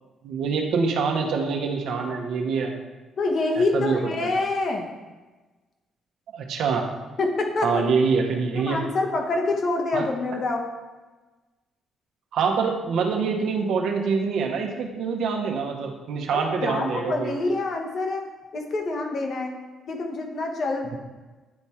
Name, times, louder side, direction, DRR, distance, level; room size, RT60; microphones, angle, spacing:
voice 1, 0.2-2.7 3.6-4.0 6.3-6.9 7.6-8.8 9.9-10.1 12.3-17.3, right 5 dB, 75° right, 2 dB, 1.0 m, -25 dB
voice 2, 3.2-4.9 7.2-7.8 8.5-10.7 16.3-18.3 18.5-19.6 19.9-21.0, left 2 dB, 55° left, 2 dB, 1.2 m, -26 dB
9.7 x 3.5 x 4.3 m, 1.2 s
cardioid pair, 90°, 0 cm